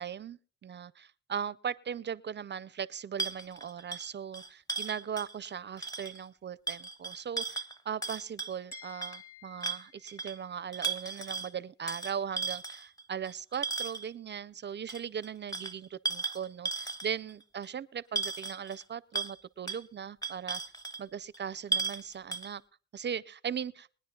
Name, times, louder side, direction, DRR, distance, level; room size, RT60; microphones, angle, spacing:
voice 1, 0.0-20.6 21.0-22.6 22.9-23.9, right 8 dB, 35° right, 0.5 m, -39 dB
sound 1, 3.2-5.5 5.8-6.2 6.7-9.2 9.6-10.4 10.7-11.5 11.9-14.1 14.9-17.3 17.6-17.7 18.2-18.8 19.1-19.4 19.7-19.8 20.2-21.0 21.3-21.4 21.7-22.0 22.3-22.5, right 4 dB, 15° left, 0.9 m, -36 dB
sound 2, 8.7-10.7, left 8 dB, 45° left, 2.1 m, -53 dB
22.5 x 10.0 x 2.3 m
cardioid pair, 90°, 30 cm